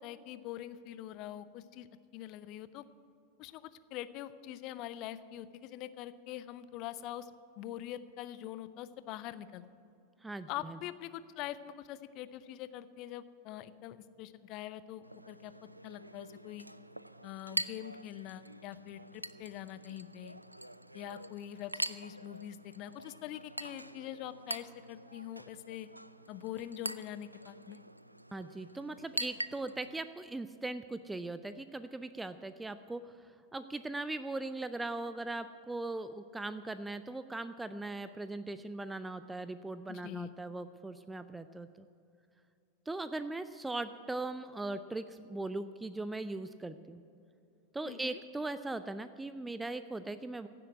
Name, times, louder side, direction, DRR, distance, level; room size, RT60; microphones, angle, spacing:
voice 1, 0.0-1.9 2.1-2.8 3.4-9.6 10.5-16.7 17.2-20.4 20.9-25.9 26.3-27.8 39.9-40.3 47.8-48.2, left 12 dB, 40° left, 15 dB, 0.6 m, -44 dB
voice 2, 10.2-10.8 28.3-33.2 33.5-41.9 42.9-47.0 47.7-50.5, right 2 dB, 10° right, 12 dB, 0.4 m, -39 dB
Chink clink, 15.0-30.0, right 1 dB, 85° right, 0.4 m, -44 dB
16.0 x 7.7 x 9.5 m, 2.5 s
figure-of-eight pair, 90°, 0 cm